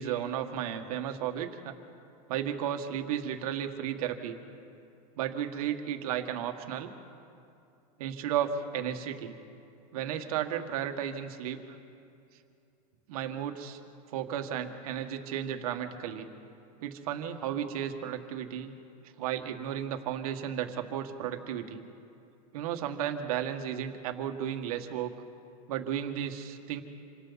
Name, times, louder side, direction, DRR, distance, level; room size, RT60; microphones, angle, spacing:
voice 1, 0.0-1.7 2.3-4.4 5.2-6.9 8.0-9.4 9.9-11.6 13.1-13.8 14.1-16.3 16.8-18.7 19.2-21.8 22.5-25.1 25.7-26.8, right 9 dB, 65° right, 5 dB, 1.8 m, -34 dB
27.5 x 25.5 x 4.2 m, 2.6 s
supercardioid pair, 160°, 20 cm